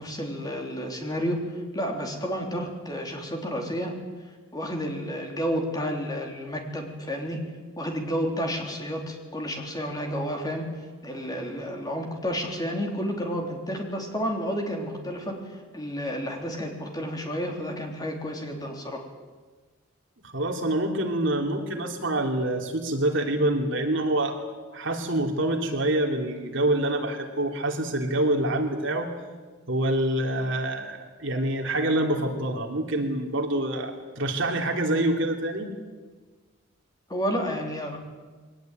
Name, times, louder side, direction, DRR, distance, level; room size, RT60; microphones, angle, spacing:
voice 1, 0.0-4.0 4.5-7.4 7.8-10.7 11.0-19.0 37.1-38.0, equal, 20° left, 2 dB, 3.5 m, -31 dB
voice 2, 20.2-24.4 24.7-29.1 29.7-35.7, right 1 dB, 60° right, 3 dB, 3.0 m, -26 dB
22.5 x 18.5 x 9.2 m, 1.4 s
head